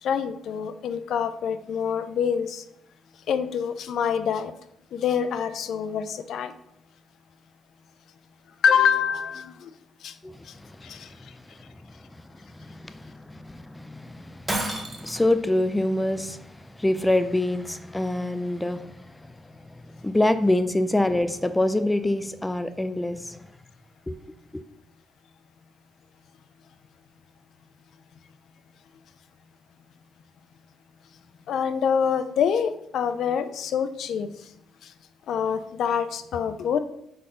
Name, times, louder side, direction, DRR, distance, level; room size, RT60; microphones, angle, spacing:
voice 1, 0.0-2.6 3.3-4.5 4.9-6.5 8.6-9.7 10.0-10.2 10.4-10.5 10.8-11.3 31.5-34.5 34.8-34.9 35.3-36.8, left 7 dB, 70° left, 0.4 m, -26 dB
voice 2, 10.2-11.3 12.0-12.2 12.5-19.3 19.7-23.4 24.1-24.2 24.5-24.6, left 1 dB, 10° left, 0.4 m, -26 dB
Shatter, 14.5-15.3, right 1 dB, 10° right, 1.2 m, -29 dB
4.9 x 4.4 x 5.6 m
cardioid pair, 90°, 0 cm